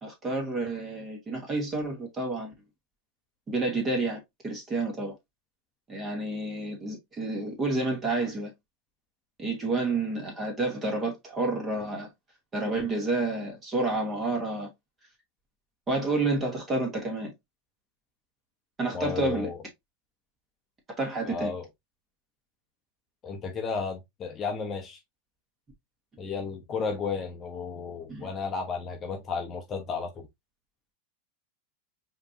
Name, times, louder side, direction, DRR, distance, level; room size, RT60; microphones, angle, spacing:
voice 1, 0.0-2.5 3.5-5.1 5.9-8.5 9.4-12.1 12.5-14.7 15.9-17.3 18.8-19.5 21.0-21.5 28.1-28.3, right 2 dB, 20° right, 2.2 m, -29 dB
voice 2, 18.9-19.6 21.2-21.7 23.2-25.0 26.2-30.3, left 5 dB, 25° left, 0.8 m, -33 dB
5.0 x 3.1 x 2.7 m
supercardioid pair, 140°, 0 cm